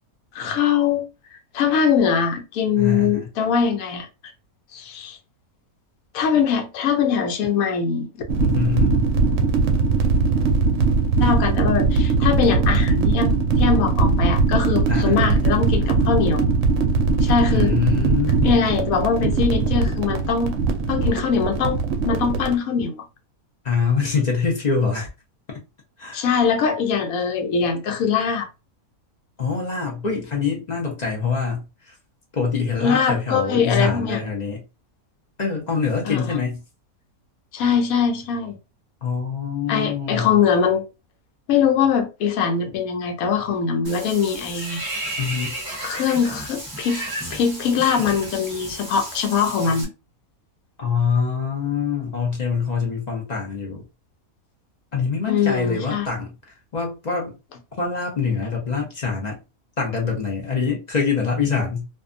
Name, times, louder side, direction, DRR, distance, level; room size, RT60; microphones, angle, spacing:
voice 1, 0.3-1.1 1.5-4.1 4.7-5.2 6.1-8.2 11.2-16.4 17.2-17.7 18.4-20.6 20.9-21.8 22.0-23.0 26.1-28.5 32.8-34.2 36.0-36.2 37.5-38.5 39.7-40.8 41.5-44.8 45.8-49.9 55.3-56.1, left 6 dB, 75° left, 1.1 m, -22 dB
voice 2, 2.8-3.3 8.4-9.1 14.9-15.2 17.5-18.6 23.6-25.1 25.5-25.6 26.0-26.2 29.4-31.9 32.3-34.6 35.4-36.6 39.0-40.4 42.6-42.7 45.2-45.5 50.8-53.8 54.9-57.4 57.8-59.4 59.8-61.9, left 5 dB, 40° left, 0.6 m, -24 dB
sound 1, 8.3-22.5, right 4 dB, 70° right, 0.8 m, -20 dB
Water / Bathtub (filling or washing), 43.8-49.8, right 1 dB, 20° right, 0.7 m, -33 dB
2.6 x 2.3 x 2.4 m
omnidirectional pair, 1.5 m